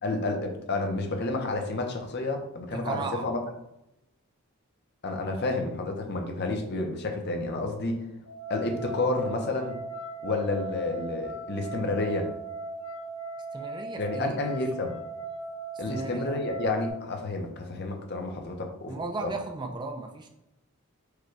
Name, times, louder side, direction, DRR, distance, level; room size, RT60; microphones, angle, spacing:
voice 1, 0.0-3.4 5.0-8.0 8.5-9.8 10.2-12.3 14.0-15.0 15.8-19.3, left 2 dB, 50° left, 3 dB, 0.7 m, -30 dB
voice 2, 2.7-3.3 13.5-14.4 15.9-16.3 18.9-20.3, right 3 dB, 20° right, 4 dB, 0.4 m, -35 dB
sound 1, 8.3-16.9, right 3 dB, 70° left, 1.3 m, -38 dB
4.9 x 2.2 x 4.6 m, 0.88 s
head